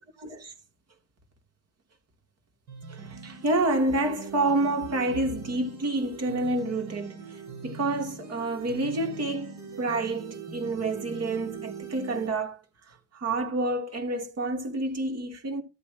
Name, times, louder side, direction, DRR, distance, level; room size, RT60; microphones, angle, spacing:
voice 1, 0.2-0.5 2.9-12.6 12.9-15.6, right 2 dB, 55° right, 3.3 m, -29 dB
sound 1, 2.7-12.3, right 5 dB, 80° right, 5.9 m, -42 dB
13.0 x 8.6 x 3.0 m
cardioid pair, 90°, 30 cm